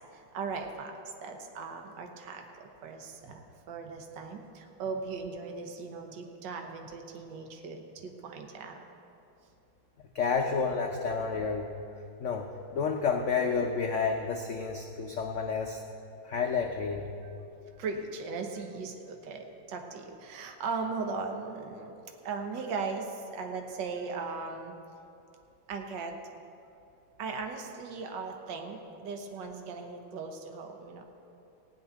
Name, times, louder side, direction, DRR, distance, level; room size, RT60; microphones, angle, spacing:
voice 1, 0.1-8.9 17.8-24.7 25.7-26.2 27.2-31.0, right 4 dB, 70° right, 4 dB, 1.6 m, -38 dB
voice 2, 10.1-11.7 12.2-15.8 16.2-17.1, left 5 dB, 65° left, 2 dB, 0.7 m, -30 dB
16.0 x 5.4 x 9.2 m, 2.6 s
omnidirectional pair, 2.2 m